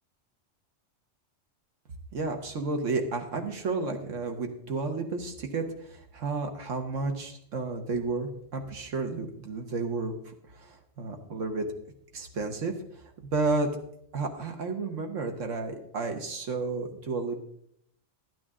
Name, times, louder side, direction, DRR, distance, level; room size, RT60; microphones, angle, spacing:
voice 1, 2.1-11.7 12.1-13.0 13.3-13.7 14.1-17.4, right 3 dB, 75° right, 5 dB, 1.5 m, -32 dB
12.0 x 9.2 x 3.7 m, 0.72 s
omnidirectional pair, 1.3 m